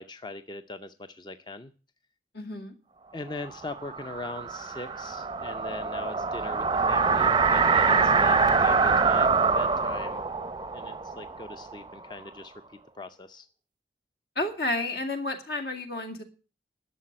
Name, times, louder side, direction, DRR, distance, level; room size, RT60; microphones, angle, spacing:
voice 1, 0.0-1.7 3.1-10.2 10.7-13.5, left 2 dB, 25° left, 0.5 m, -41 dB
voice 2, 2.3-2.7 14.4-16.2, left 2 dB, 65° left, 2.5 m, -31 dB
sound 1, 3.5-12.3, right 4 dB, 25° right, 0.5 m, -25 dB
11.5 x 6.8 x 9.6 m
head